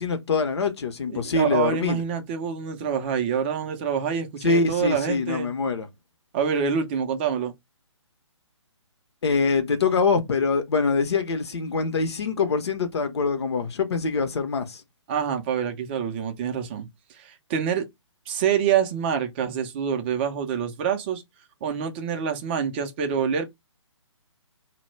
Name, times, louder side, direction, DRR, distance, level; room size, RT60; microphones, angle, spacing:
voice 1, 0.0-2.0 4.4-5.9 9.2-14.8, left 4 dB, 55° left, 0.6 m, -24 dB
voice 2, 1.1-5.5 6.3-7.5 15.1-17.9 18.3-21.2 21.6-23.5, right 7 dB, 20° right, 0.4 m, -26 dB
2.1 x 2.0 x 3.2 m
figure-of-eight pair, 140°, 16 cm